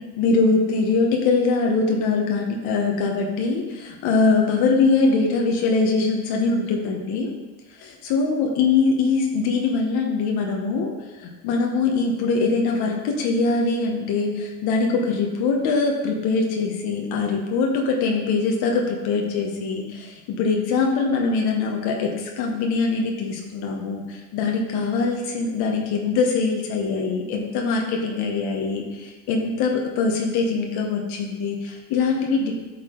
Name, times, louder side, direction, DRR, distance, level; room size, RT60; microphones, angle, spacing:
voice 1, 0.2-7.3 7.7-32.5, left 4 dB, 80° left, 1 dB, 1.1 m, -22 dB
8.9 x 5.9 x 3.8 m, 1.2 s
supercardioid pair, 75°, 37 cm